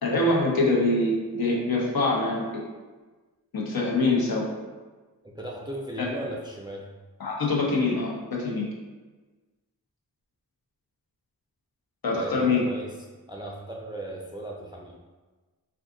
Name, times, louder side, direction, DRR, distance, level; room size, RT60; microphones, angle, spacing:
voice 1, 0.0-2.5 3.5-4.5 6.0-6.1 7.2-8.7 12.0-12.7, left 2 dB, 75° left, -3 dB, 0.8 m, -24 dB
voice 2, 5.3-6.9 12.1-12.3 12.6-12.9 13.3-15.0, right 1 dB, 15° right, -3 dB, 0.4 m, -36 dB
2.5 x 2.4 x 3.6 m, 1.3 s
wide cardioid pair, 60°, 37 cm